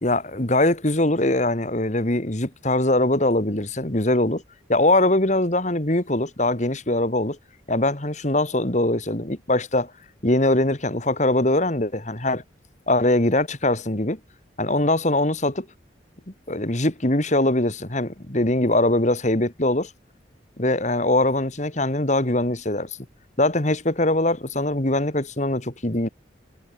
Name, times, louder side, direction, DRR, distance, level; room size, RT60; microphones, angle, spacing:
voice 1, 0.0-4.4 4.7-7.4 7.7-9.9 10.2-12.4 12.9-14.2 14.6-15.7 16.5-19.9 20.6-22.9 23.4-26.1, left 1 dB, 40° left, 2.4 m, -22 dB
head